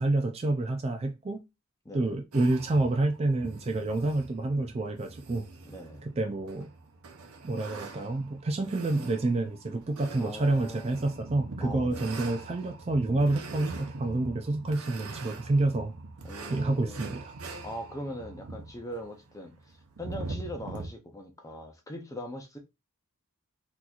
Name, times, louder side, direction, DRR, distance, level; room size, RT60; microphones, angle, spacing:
voice 1, 0.0-1.4 1.9-5.5 6.0-6.7 7.4-15.9 16.5-17.3, right 2 dB, 30° right, 0.3 m, -28 dB
voice 2, 1.8-2.1 5.6-6.0 10.2-11.2 11.6-12.2 16.2-17.1 17.6-22.6, equal, 15° left, 0.6 m, -41 dB
sound 1, 2.3-20.9, right 3 dB, 85° right, 0.7 m, -43 dB
3.9 x 2.9 x 2.4 m
head